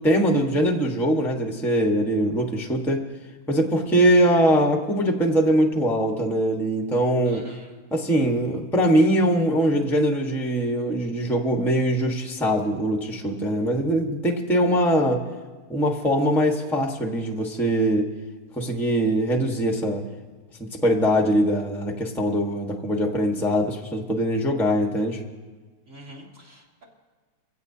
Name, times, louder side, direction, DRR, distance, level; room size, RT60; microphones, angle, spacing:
voice 1, 0.0-3.0 3.5-7.4 7.9-15.2 15.7-18.0 18.6-20.0 20.6-25.2, equal, ahead, 2 dB, 1.0 m, -22 dB
voice 2, 7.2-7.7 25.9-26.8, right 1 dB, 45° right, -2 dB, 3.3 m, -45 dB
24.5 x 16.5 x 2.8 m, 1.4 s
omnidirectional pair, 1.9 m